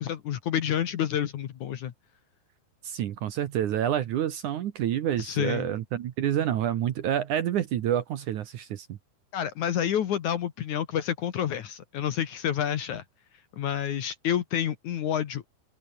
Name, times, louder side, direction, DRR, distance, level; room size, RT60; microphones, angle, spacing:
voice 1, 0.0-1.9 5.2-5.7 9.3-13.0 13.6-15.4, left 9 dB, 60° left, 2.4 m, -29 dB
voice 2, 2.8-8.9, right 10 dB, 65° right, 2.3 m, -28 dB
open air
omnidirectional pair, 4.5 m